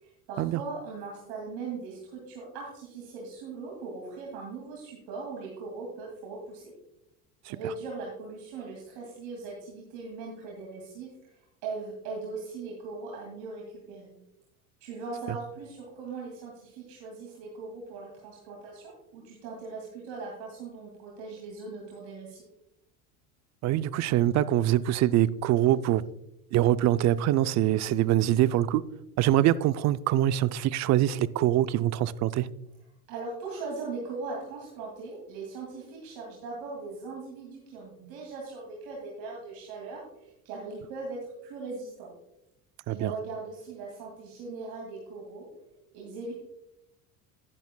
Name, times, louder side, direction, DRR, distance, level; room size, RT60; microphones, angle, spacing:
voice 1, 0.0-6.7 7.5-11.3 11.6-14.1 14.8-22.4 33.1-42.1 42.9-45.5 45.9-46.3, right 4 dB, 70° right, 2.4 m, -39 dB
voice 2, 23.6-26.0 26.5-28.8 29.2-32.5 42.9-43.1, right 13 dB, 45° right, 0.4 m, -24 dB
10.5 x 10.5 x 2.2 m
supercardioid pair, 95°, 41 cm